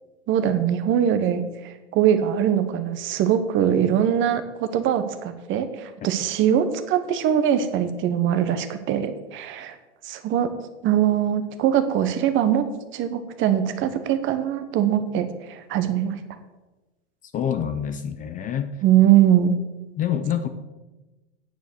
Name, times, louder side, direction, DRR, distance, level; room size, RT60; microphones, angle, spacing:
voice 1, 0.3-9.7 10.0-10.5 10.8-12.7 12.9-16.2 18.8-19.6, right 10 dB, 35° right, 9 dB, 1.1 m, -22 dB
voice 2, 17.3-18.7 20.0-20.5, left 9 dB, 25° left, 9 dB, 0.6 m, -26 dB
9.4 x 7.0 x 6.4 m, 1.1 s
hypercardioid pair, 120°, 34 cm